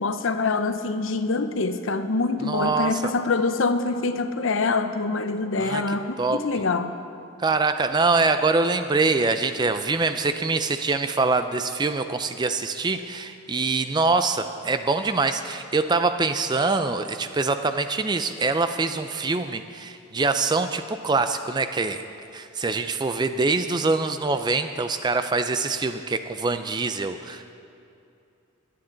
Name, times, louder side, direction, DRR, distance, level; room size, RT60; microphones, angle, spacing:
voice 1, 0.0-7.0, left 3 dB, 60° left, 10 dB, 0.6 m, -25 dB
voice 2, 2.4-3.1 5.6-6.4 7.4-22.0 22.3-27.5, right 3 dB, 20° right, 9 dB, 0.3 m, -24 dB
21.0 x 8.5 x 3.9 m, 2.6 s
head